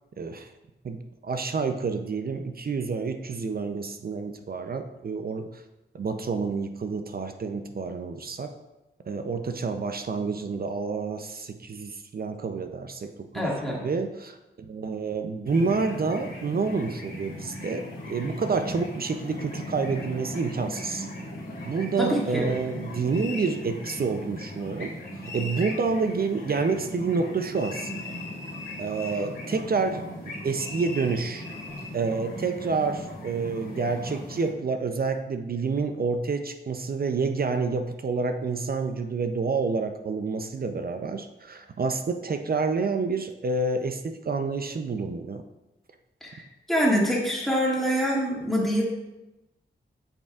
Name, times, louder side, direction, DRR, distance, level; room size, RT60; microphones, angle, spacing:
voice 1, 0.2-0.5 0.8-5.6 5.9-8.5 9.1-13.5 13.8-21.1 21.7-24.9 25.2-28.1 28.8-30.0 30.4-31.4 31.9-45.4, right 4 dB, 50° right, 7 dB, 0.5 m, -28 dB
voice 2, 13.3-13.8 22.0-22.5 46.2-46.4 46.7-48.8, equal, ahead, -4 dB, 2.0 m, -25 dB
sound 1, 15.5-34.5, left 1 dB, 90° left, 2.2 m, -38 dB
sound 2, 23.1-23.6 25.2-25.8 27.6-29.3 30.6-32.0, left 4 dB, 60° left, 1.1 m, -40 dB
8.5 x 5.3 x 2.4 m, 0.99 s
cardioid pair, 60°, 20 cm